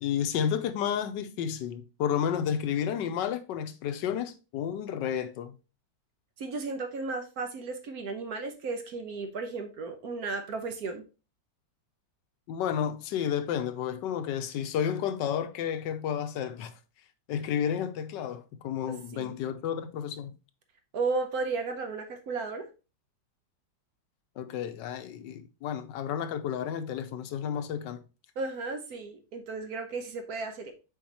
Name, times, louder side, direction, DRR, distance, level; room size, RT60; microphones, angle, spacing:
voice 1, 0.0-5.5 12.5-16.7 17.3-20.3 24.4-28.0, left 8 dB, 80° left, 1.2 m, -31 dB
voice 2, 6.4-11.1 18.9-19.4 20.9-22.6 28.4-30.7, right 3 dB, 60° right, 1.2 m, -34 dB
7.0 x 4.7 x 2.9 m
omnidirectional pair, 2.0 m